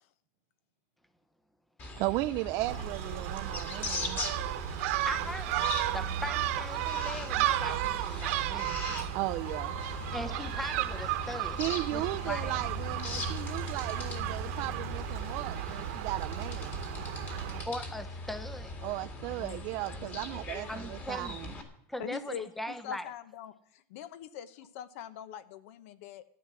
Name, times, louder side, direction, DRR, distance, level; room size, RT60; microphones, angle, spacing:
sound 1, 1.8-21.6, left 2 dB, 25° left, 2.1 m, -40 dB
voice 1, 2.0-4.2 9.1-9.8 10.2-10.3 11.6-16.8 18.8-21.5, right 18 dB, 45° right, 8 dB, 0.4 m, -35 dB
Gull seagull, 2.6-17.6, right 14 dB, 70° right, 1.2 m, -34 dB
voice 2, 5.0-5.7 5.9-9.0 10.1-11.6 11.9-12.6 17.7-18.7 20.7-21.4 21.9-23.1, left 1 dB, ahead, 12 dB, 0.7 m, -40 dB
Wind instrument woodwind instrument, 9.4-13.6, left 6 dB, 45° left, 2.4 m, -52 dB
voice 3, 19.4-19.7 20.0-20.2 22.0-26.2, left 8 dB, 70° left, 14 dB, 1.2 m, -43 dB
14.0 x 9.7 x 7.5 m, 0.73 s
supercardioid pair, 170°, 8 cm